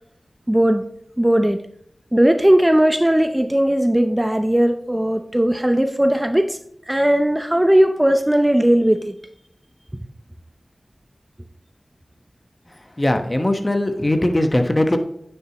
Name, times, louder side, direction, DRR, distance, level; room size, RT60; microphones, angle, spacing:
voice 1, 0.5-0.9 1.2-1.6 2.1-6.6 6.9-9.1, right 1 dB, 15° right, 7 dB, 0.6 m, -17 dB
voice 2, 12.7-15.0, left 1 dB, 25° left, 6 dB, 1.1 m, -20 dB
10.0 x 7.3 x 3.0 m, 0.72 s
wide cardioid pair, 50°, 0 cm